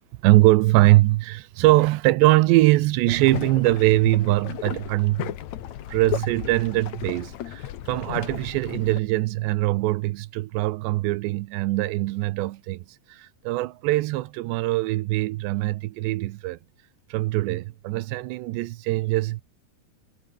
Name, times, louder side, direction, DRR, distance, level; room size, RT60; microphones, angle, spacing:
voice 1, 0.2-5.3 5.9-12.8 13.1-16.6 17.1-19.4, right 18 dB, 85° right, 3.0 m, -22 dB
sound 1, 3.1-9.0, left 11 dB, 65° left, 1.8 m, -34 dB
omnidirectional pair, 5.0 m